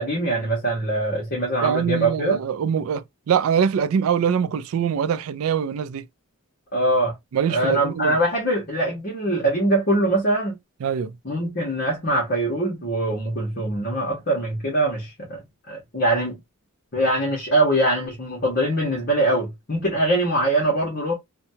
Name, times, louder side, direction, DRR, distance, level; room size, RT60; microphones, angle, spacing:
voice 1, 0.0-2.4 6.7-7.2 7.5-10.6 11.2-16.4 16.9-21.1, right 1 dB, 45° left, 1.1 m, -23 dB
voice 2, 1.6-6.1 7.3-8.1 10.8-11.1, right 7 dB, 70° right, 0.3 m, -23 dB
2.7 x 2.2 x 2.6 m
head